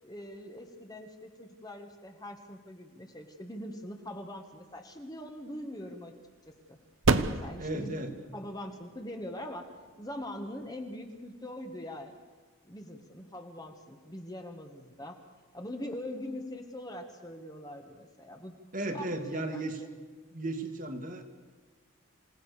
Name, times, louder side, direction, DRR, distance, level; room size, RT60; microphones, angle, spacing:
voice 1, 0.0-6.2 6.5-6.8 7.3-8.0 8.3-9.7 10.0-12.2 12.6-15.2 15.5-18.6 18.8-19.9, left 1 dB, 20° left, 4 dB, 1.8 m, -42 dB
sound 1, 4.4-11.7, right 3 dB, 70° right, 1.0 m, -35 dB
voice 2, 7.6-8.1 18.7-19.8 20.3-21.2, right 2 dB, 40° right, 5 dB, 2.2 m, -35 dB
27.5 x 18.0 x 6.8 m, 1.4 s
head